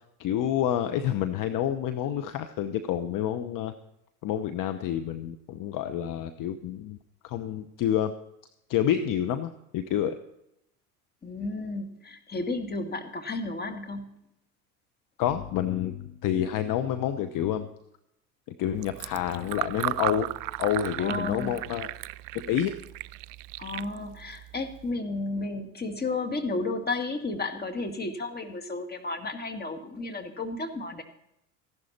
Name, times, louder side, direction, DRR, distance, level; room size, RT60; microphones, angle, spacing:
voice 1, 0.2-3.7 4.2-7.0 7.2-8.1 8.7-10.2 15.2-17.7 18.5-20.3 20.6-21.9 22.3-22.8, left 10 dB, 45° left, 10 dB, 0.9 m, -28 dB
voice 2, 11.2-14.2 21.0-21.7 23.6-31.0, left 2 dB, 20° left, 6 dB, 2.1 m, -33 dB
Fill (with liquid), 18.7-24.9, right 19 dB, 50° right, 0.5 m, -36 dB
15.0 x 11.5 x 4.3 m, 0.82 s
hypercardioid pair, 70°, 44 cm